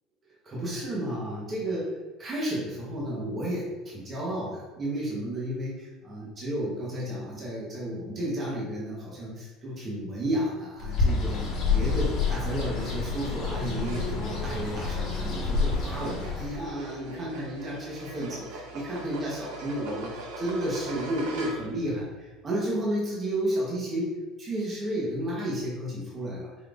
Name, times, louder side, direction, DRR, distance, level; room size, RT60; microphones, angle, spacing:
voice 1, 0.4-1.9 2.2-11.4 11.7-24.1 24.4-26.5, right 1 dB, 20° right, -6 dB, 1.0 m, -32 dB
Bird, 10.8-16.7, left 4 dB, 40° left, 1.2 m, -28 dB
sound 1, 13.8-21.9, right 2 dB, 75° right, 0.8 m, -42 dB
5.0 x 4.0 x 2.4 m, 1.2 s
cardioid pair, 180°, 0 cm